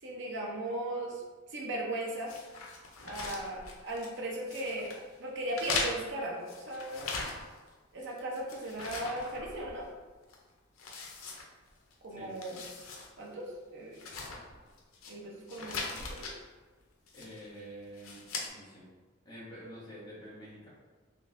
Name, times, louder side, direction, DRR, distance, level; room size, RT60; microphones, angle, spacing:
voice 1, 0.0-1.2 1.5-2.3 3.0-4.9 5.2-7.1 7.9-9.9 12.0-12.6 13.2-14.0 15.1-16.3, right 1 dB, 60° right, -2 dB, 0.8 m, -37 dB
sound 1, 2.3-4.2 4.5-5.0 5.5-7.7 8.0-9.9 10.3-10.4 10.8-11.9 12.3-13.1 13.4-13.5 13.9-15.1 15.5-16.3 17.1-17.5 17.9-18.5, left 3 dB, 85° left, 0.6 m, -40 dB
voice 2, 17.1-18.2 18.5-18.9 19.2-20.7, equal, 20° left, -9 dB, 1.3 m, -47 dB
3.7 x 3.1 x 2.6 m, 1.3 s
head